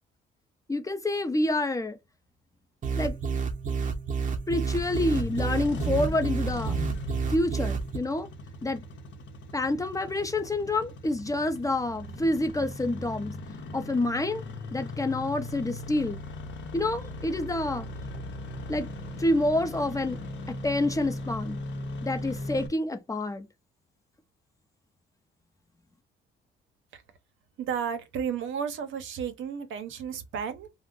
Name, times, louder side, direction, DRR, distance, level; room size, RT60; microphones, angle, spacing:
voice 1, 0.7-2.0 3.0-3.2 4.5-6.7 7.3-8.3 8.6-8.8 9.5-13.4 13.7-14.4 14.7-16.2 16.7-17.9 18.7-18.9 19.2-20.2 20.5-21.6 22.0-23.5, left 2 dB, 15° left, 0.5 m, -28 dB
sound 1, 2.8-8.0, right 5 dB, 40° right, 0.7 m, -30 dB
Engine starting, 4.7-22.7, left 1 dB, 65° left, 0.7 m, -38 dB
voice 2, 27.6-30.7, right 7 dB, 75° right, 0.7 m, -33 dB
2.4 x 2.1 x 3.6 m
cardioid pair, 90°, 20 cm